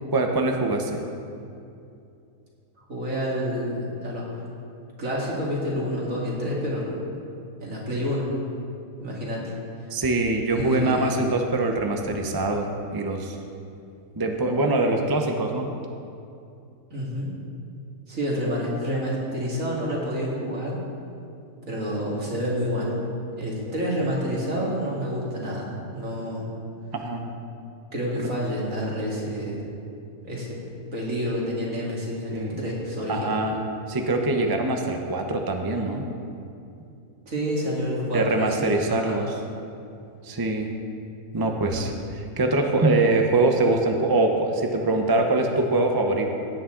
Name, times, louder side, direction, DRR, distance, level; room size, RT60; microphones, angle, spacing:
voice 1, 0.1-1.0 9.9-13.4 14.2-15.7 24.6-24.7 26.9-27.3 32.3-32.6 33.1-33.6 33.9-36.0 38.1-39.3 40.2-40.7 41.3-46.3, right 2 dB, 25° right, 3 dB, 0.5 m, -23 dB
voice 2, 2.9-4.4 5.0-7.0 7.6-8.3 9.0-9.5 10.5-11.2 16.9-17.3 18.1-20.8 21.7-22.9 23.4-26.5 27.9-29.6 30.2-30.6 30.9-33.4 37.3-39.2, equal, 60° right, -4 dB, 2.6 m, -28 dB
16.5 x 8.5 x 3.8 m, 2.6 s
omnidirectional pair, 1.6 m